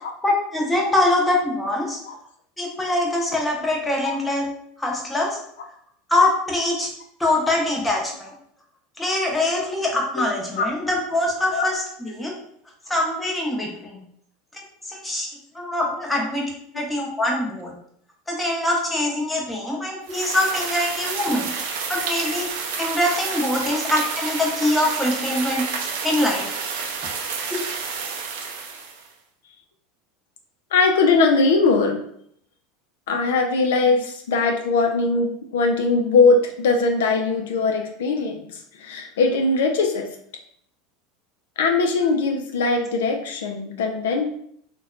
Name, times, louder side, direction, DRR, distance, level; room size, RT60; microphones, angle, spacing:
voice 1, 0.2-2.0 2.6-4.5 4.8-5.4 6.1-6.9 7.2-8.3 9.0-12.3 12.9-14.0 14.9-15.3 15.5-16.5 16.7-17.7 18.3-21.5 21.9-22.5 22.8-25.7 26.0-26.6 27.5-27.6, left 1 dB, 10° left, -1 dB, 0.7 m, -23 dB
sound 1, 20.1-29.1, right 5 dB, 75° right, 0.4 m, -29 dB
voice 2, 30.7-32.0 33.1-40.1 41.6-44.3, left 3 dB, 80° left, 3 dB, 0.3 m, -20 dB
2.7 x 2.1 x 2.4 m, 0.67 s
hypercardioid pair, 100°, 0 cm